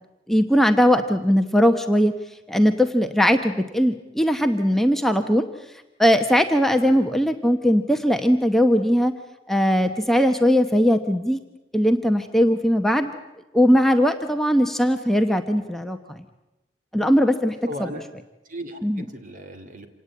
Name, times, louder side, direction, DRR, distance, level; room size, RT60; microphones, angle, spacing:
voice 1, 0.3-2.1 2.5-5.5 6.0-9.1 9.5-11.4 11.7-13.1 13.5-16.2 16.9-17.6 18.8-19.0, equal, ahead, 5 dB, 0.9 m, -19 dB
voice 2, 6.7-7.1 17.7-18.0 18.4-19.9, equal, 45° right, 7 dB, 2.6 m, -37 dB
27.0 x 18.5 x 8.7 m, 1.0 s
head